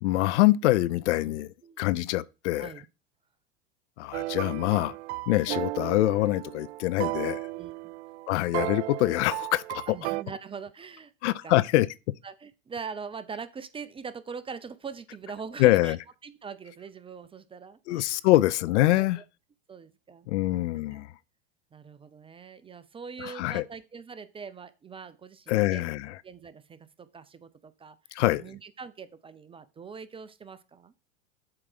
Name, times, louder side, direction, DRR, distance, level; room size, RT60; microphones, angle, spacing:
voice 1, 0.0-2.7 4.0-4.9 5.3-7.5 8.3-10.0 11.2-11.9 15.6-16.0 17.9-19.2 20.3-21.1 23.2-23.6 25.5-26.2 28.1-28.4, left 17 dB, 65° left, 0.6 m, -24 dB
voice 2, 1.3-1.8 2.6-2.9 7.5-7.9 9.9-11.1 11.4-11.6 12.2-16.0 16.2-18.2 18.8-19.2 19.7-20.3 20.9-21.0 21.7-25.9 26.2-28.0 28.3-30.9, right 6 dB, 15° right, 0.5 m, -42 dB
sound 1, 4.1-10.2, right 19 dB, 60° right, 0.5 m, -34 dB
7.7 x 4.7 x 6.1 m
hypercardioid pair, 105°, 38 cm